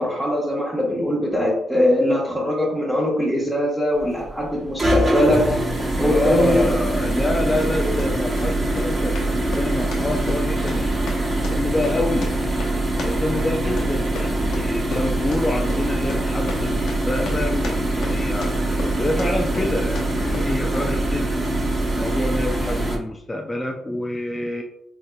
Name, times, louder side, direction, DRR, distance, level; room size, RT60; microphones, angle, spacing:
voice 1, 0.0-5.6 6.0-6.7 7.5-8.0, left 1 dB, ahead, -6 dB, 1.2 m, -21 dB
sound 1, 4.0-23.0, right 1 dB, 30° right, 1.2 m, -23 dB
sound 2, 5.7-5.9 6.5-6.7 7.4-21.0, left 2 dB, 75° left, 0.9 m, -36 dB
voice 2, 6.0-12.3 13.0-18.5 19.0-21.3 22.0-24.6, left 2 dB, 15° left, 1 dB, 0.4 m, -27 dB
4.0 x 3.6 x 2.2 m, 0.74 s
cardioid pair, 90°, 0 cm